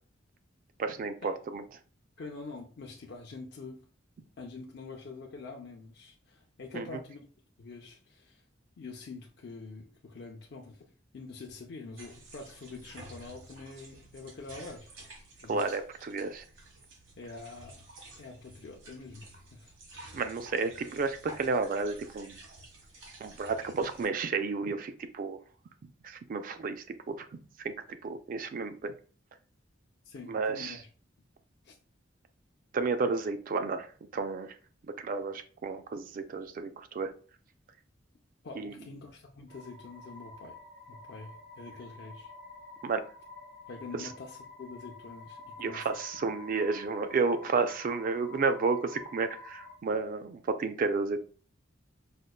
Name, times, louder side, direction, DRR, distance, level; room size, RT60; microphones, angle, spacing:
voice 1, 0.8-1.6 6.7-6.9 15.5-16.4 20.1-22.4 23.2-25.4 26.0-27.3 27.6-28.9 30.3-30.8 32.7-34.5 35.0-37.1 38.6-38.8 42.8-43.0 44.0-44.1 45.6-51.2, right 4 dB, 45° right, 9 dB, 0.3 m, -32 dB
voice 2, 2.2-3.8 4.4-7.2 7.6-8.4 8.8-10.9 11.1-14.9 15.4-15.7 17.2-17.8 18.2-19.7 30.0-30.9 31.6-31.8 38.4-40.6 40.9-42.3 43.7-45.9, left 3 dB, 60° left, 0 dB, 0.5 m, -45 dB
sound 1, 12.0-24.1, right 2 dB, 90° right, 1.1 m, -51 dB
sound 2, 39.5-49.7, left 3 dB, 75° right, 1.4 m, -49 dB
5.0 x 2.1 x 2.3 m, 0.40 s
head